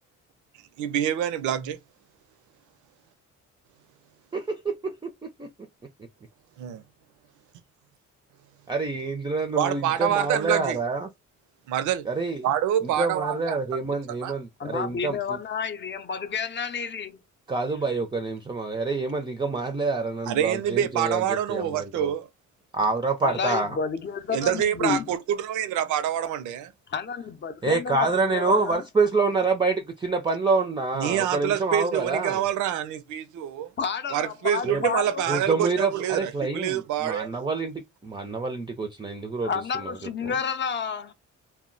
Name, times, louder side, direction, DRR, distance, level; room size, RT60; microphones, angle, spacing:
voice 1, 0.8-1.8 6.6-6.8 9.6-10.8 11.7-12.1 12.4-13.6 14.2-14.3 20.3-22.3 24.3-26.7 31.0-33.7 34.1-37.3, right 10 dB, 80° right, 0.5 m, -26 dB
voice 2, 4.3-5.5 8.7-11.1 12.1-12.5 13.0-15.4 17.5-22.1 22.7-23.8 27.6-32.4 34.6-34.9 35.3-39.5 39.8-39.9 40.2-40.3, right 3 dB, 15° right, 0.4 m, -27 dB
voice 3, 14.6-17.2 23.2-25.1 26.9-28.8 33.8-35.4 39.4-41.1, left 6 dB, 35° left, 0.6 m, -30 dB
2.2 x 2.1 x 3.7 m
cardioid pair, 90°, 30 cm